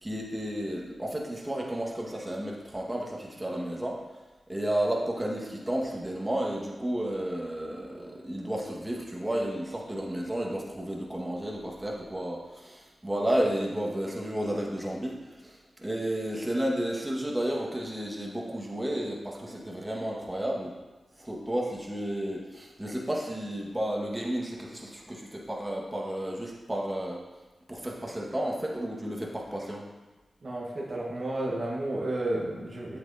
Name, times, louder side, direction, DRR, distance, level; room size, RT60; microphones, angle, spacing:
voice 1, 0.0-4.0 4.5-20.7 21.2-27.2 27.7-29.9, right 1 dB, 20° right, -2 dB, 1.6 m, -32 dB
voice 2, 30.4-33.0, right 1 dB, 55° right, -3 dB, 1.4 m, -32 dB
8.4 x 7.0 x 2.8 m, 1.2 s
cardioid pair, 45°, 0 cm